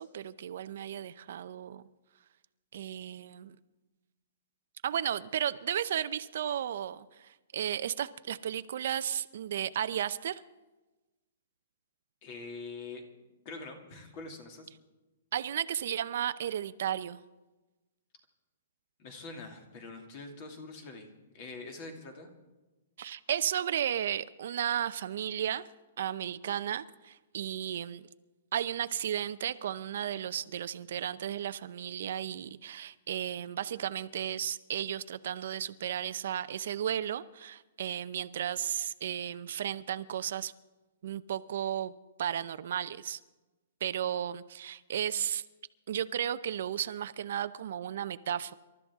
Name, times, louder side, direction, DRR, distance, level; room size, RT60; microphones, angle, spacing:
voice 1, 0.0-1.8 2.7-3.6 4.8-10.4 15.3-17.2 23.0-25.6 26.0-28.1 28.5-40.5 41.0-41.9 42.2-43.2 43.8-45.4 45.9-48.5, right 10 dB, 60° right, 13 dB, 0.6 m, -34 dB
voice 2, 12.2-13.0 13.4-14.7 19.0-21.1 21.3-22.3, left 3 dB, 35° left, 4 dB, 2.5 m, -44 dB
27.0 x 13.0 x 3.6 m, 1.1 s
hypercardioid pair, 165°, 0 cm